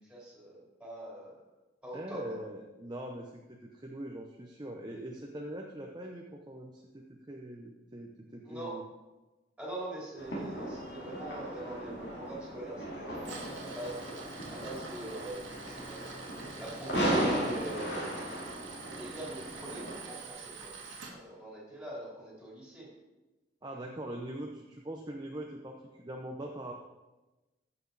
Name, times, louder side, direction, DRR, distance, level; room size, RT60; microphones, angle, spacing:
voice 1, 0.0-1.4 1.8-2.4 8.4-8.8 9.6-14.0 14.5-16.0 16.6-18.0 18.9-20.7 21.1-22.9, right 1 dB, 5° right, -6 dB, 3.2 m, -43 dB
voice 2, 1.9-8.8 23.6-26.7, right 1 dB, 20° right, 1 dB, 0.7 m, -42 dB
sound 1, 10.2-20.0, right 1 dB, 60° left, 2.8 m, -36 dB
Tools, 13.1-21.1, right 4 dB, 85° right, 1.9 m, -46 dB
14.5 x 6.1 x 4.0 m, 1.1 s
head